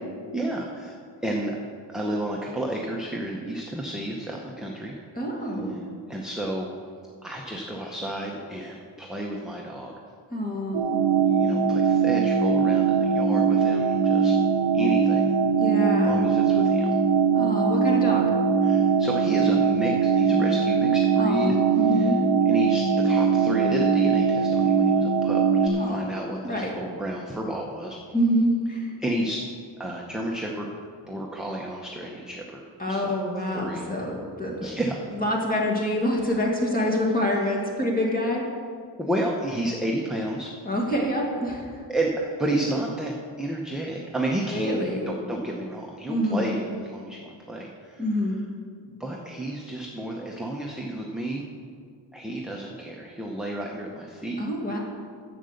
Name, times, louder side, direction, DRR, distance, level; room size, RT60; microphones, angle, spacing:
voice 1, 0.3-1.0 1.2-1.5 1.9-4.9 6.1-6.7 7.2-9.9 11.3-14.4 14.7-15.3 16.0-17.0 18.6-21.5 21.9-22.1 22.5-28.0 29.0-29.4 29.8-30.7 31.1-33.1 33.5-33.8 34.6-35.2 38.9-40.5 41.9-48.0 49.0-51.4 52.1-54.4, right 1 dB, ahead, -2 dB, 0.8 m, -31 dB
voice 2, 5.2-5.8 10.3-11.0 15.6-16.2 17.3-18.3 21.2-22.2 25.8-26.1 26.4-26.7 28.1-28.9 32.8-34.7 35.1-38.4 40.6-41.9 44.5-45.1 46.1-46.5 48.0-48.4 54.4-54.8, equal, 20° left, -1 dB, 2.1 m, -26 dB
sound 1, 10.7-25.7, right 6 dB, 75° right, 0.9 m, -21 dB
11.0 x 7.8 x 6.6 m, 2.1 s
wide cardioid pair, 155°, 43 cm